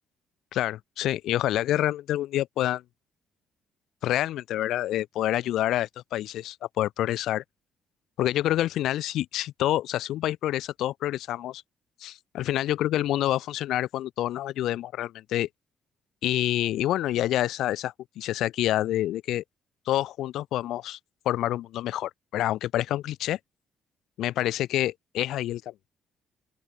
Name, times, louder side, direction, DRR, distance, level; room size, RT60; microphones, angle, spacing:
voice 1, 0.5-2.8 4.0-7.4 8.2-11.6 12.0-15.5 16.2-19.4 19.9-21.0 21.3-23.4 24.2-25.7, left 13 dB, 80° left, 3.5 m, -27 dB
open air
cardioid pair, 95°, 0 cm